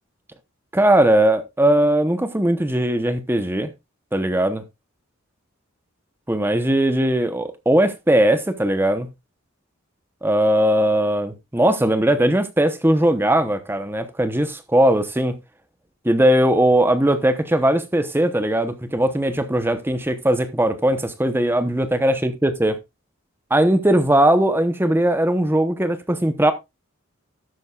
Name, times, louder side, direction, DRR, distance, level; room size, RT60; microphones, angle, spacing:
voice 1, 0.7-3.7 4.1-4.6 6.3-9.1 10.2-15.3 16.0-22.8 23.5-26.5, right 1 dB, 10° right, 0.8 m, -19 dB
12.5 x 9.1 x 2.3 m
head